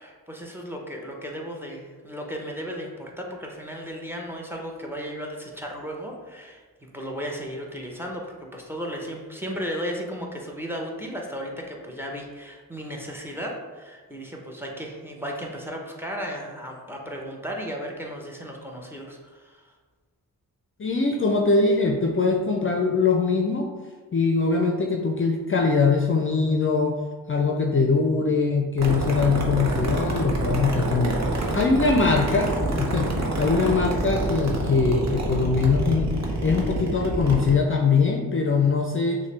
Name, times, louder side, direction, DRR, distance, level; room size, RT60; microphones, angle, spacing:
voice 1, 0.0-8.3 8.5-19.6, equal, 5° right, 0 dB, 0.8 m, -35 dB
voice 2, 20.8-23.7 24.1-27.0 27.3-36.1 36.4-39.2, left 4 dB, 35° left, 1 dB, 0.5 m, -22 dB
sound 1, 28.8-37.5, right 2 dB, 45° right, 0.9 m, -27 dB
6.3 x 2.2 x 3.2 m, 1.4 s
cardioid pair, 70°, 36 cm